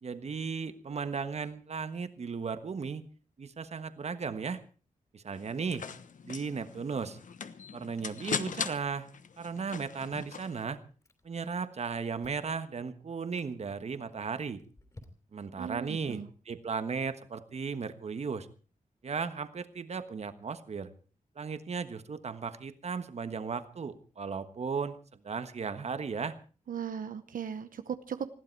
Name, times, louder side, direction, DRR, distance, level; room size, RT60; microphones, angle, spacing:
voice 1, 0.0-3.0 3.4-4.6 5.1-5.9 6.2-7.2 7.7-9.1 9.4-10.8 11.2-14.6 15.3-18.5 19.0-20.9 21.3-26.4, right 5 dB, 55° right, 11 dB, 1.3 m, -36 dB
sound 1, 5.3-10.6, left 6 dB, 70° left, 1.1 m, -40 dB
Chewing mastication, 10.5-11.5 11.7-12.6 13.1-13.5 14.1-15.5, left 2 dB, 25° left, 3.5 m, -56 dB
voice 2, 15.6-16.3 26.7-28.3, right 7 dB, 85° right, 10 dB, 0.9 m, -37 dB
20.5 x 15.0 x 4.6 m, 0.38 s
wide cardioid pair, 130°, 14 cm